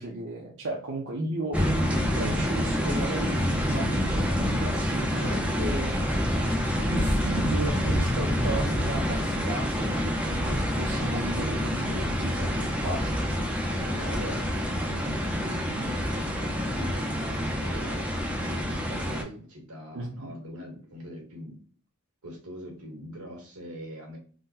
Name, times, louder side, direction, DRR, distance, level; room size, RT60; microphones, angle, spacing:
voice 1, 0.0-1.8 2.2-6.3 6.9-13.2 19.9-20.4, right 2 dB, 60° right, -1 dB, 0.6 m, -35 dB
sound 1, 1.5-19.2, equal, 5° right, 0.5 m, -27 dB
voice 2, 3.7-4.2 13.8-18.1 18.4-21.6 22.2-24.2, equal, 90° right, 0 dB, 1.4 m, -42 dB
3.6 x 2.1 x 2.6 m, 0.41 s
head